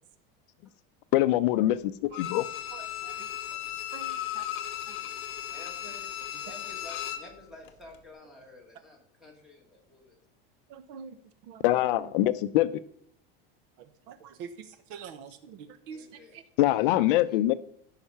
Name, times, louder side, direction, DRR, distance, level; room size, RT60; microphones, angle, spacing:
voice 1, 1.1-2.5 11.6-12.7 16.6-17.5, left 15 dB, 65° left, 13 dB, 0.6 m, -24 dB
Bowed string instrument, 2.1-7.3 7.7-7.8, left 12 dB, 40° left, 1.2 m, -36 dB
voice 2, 2.7-3.6 3.9-4.5 4.8-5.0 10.7-12.1 13.8-16.4, right 6 dB, 50° right, 11 dB, 0.9 m, -46 dB
voice 3, 5.5-10.2 15.9-16.4 16.8-17.0 17.3-17.4, left 2 dB, ahead, 0 dB, 2.4 m, -51 dB
14.5 x 5.7 x 5.7 m, 0.67 s
supercardioid pair, 170°, 29 cm